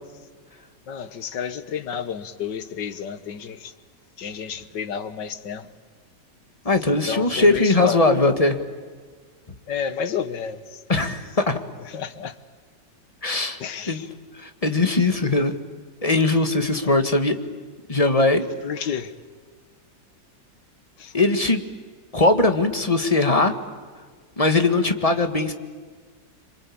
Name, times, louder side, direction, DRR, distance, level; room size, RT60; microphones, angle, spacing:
voice 1, 0.9-3.7 4.2-5.7 6.9-8.0 9.7-10.8 11.8-12.4 13.6-14.1 15.4-15.5 18.6-19.1 21.0-21.1, left 7 dB, 85° left, 1.9 m, -31 dB
voice 2, 6.7-8.6 10.9-11.6 13.2-13.6 13.9-14.0 14.4-15.5 16.0-17.4 17.9-18.5 21.1-21.6 22.1-23.5 24.4-25.5, left 2 dB, 20° left, 1.8 m, -20 dB
27.0 x 25.0 x 8.7 m
omnidirectional pair, 1.8 m